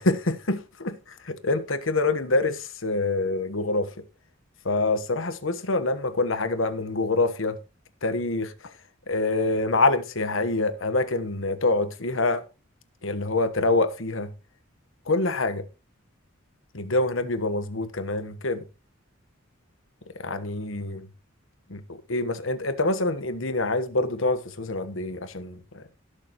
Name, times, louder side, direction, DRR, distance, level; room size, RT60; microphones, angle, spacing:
voice 1, 0.0-3.9 4.6-7.6 8.0-8.7 9.1-12.4 13.0-14.3 15.1-15.6 16.7-18.6 20.1-21.1 21.7-25.8, left 2 dB, 70° left, 1.3 m, -26 dB
17.5 x 6.7 x 3.1 m
head